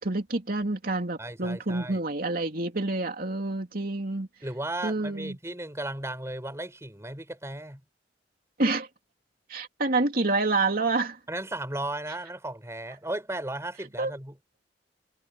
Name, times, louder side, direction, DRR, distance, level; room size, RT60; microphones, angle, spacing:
voice 1, 0.0-4.3 4.8-5.4 8.6-8.9 9.5-11.2 14.0-14.1, right 2 dB, 55° right, 2.9 m, -28 dB
voice 2, 1.2-2.0 4.4-7.8 11.3-14.4, right 1 dB, 15° right, 4.9 m, -35 dB
head